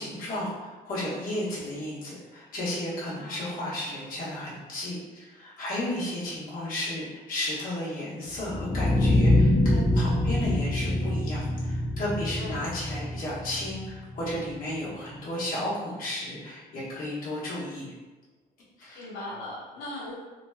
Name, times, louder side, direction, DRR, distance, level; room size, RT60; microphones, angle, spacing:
voice 1, 0.0-17.8 18.8-19.0, left 1 dB, 55° left, -9 dB, 1.2 m, -33 dB
voice 2, 3.2-3.6 5.8-6.1 12.4-12.6 18.9-20.1, left 1 dB, 85° left, -6 dB, 0.9 m, -39 dB
sound 1, 8.3-14.4, left 1 dB, 10° left, 0.5 m, -25 dB
2.9 x 2.8 x 2.2 m, 1.2 s
cardioid pair, 110°, 17 cm